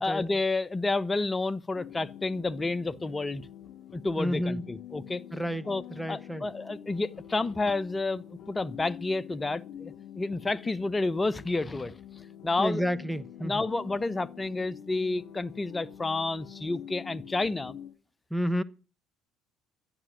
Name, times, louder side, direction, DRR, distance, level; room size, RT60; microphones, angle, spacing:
voice 1, 0.0-3.5 3.9-5.2 5.7-12.0 12.4-12.8 13.4-17.7, left 3 dB, 20° left, 1.1 m, -30 dB
sound 1, 1.7-17.9, left 10 dB, 60° left, 4.0 m, -46 dB
voice 2, 4.2-4.6 5.3-5.7 6.0-6.4 12.6-13.6 18.3-18.6, equal, ahead, 1.2 m, -30 dB
13.0 x 11.0 x 6.3 m
hypercardioid pair, 65°, 0 cm